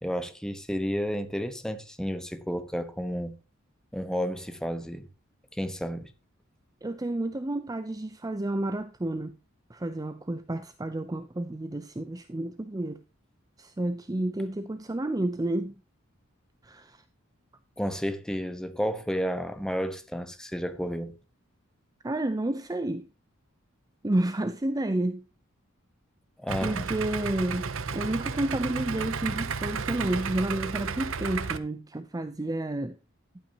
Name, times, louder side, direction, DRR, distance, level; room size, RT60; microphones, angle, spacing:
voice 1, 0.0-3.4 3.9-5.1 5.5-6.1 17.8-21.1 26.4-26.9, equal, 5° left, 1.1 m, -31 dB
voice 2, 6.8-9.4 9.7-13.0 13.6-15.7 16.6-17.0 22.0-23.1 24.0-25.2 26.6-33.0, right 1 dB, 15° right, 0.5 m, -30 dB
Idling, 26.5-31.6, right 5 dB, 65° right, 0.7 m, -33 dB
12.0 x 8.8 x 2.8 m
head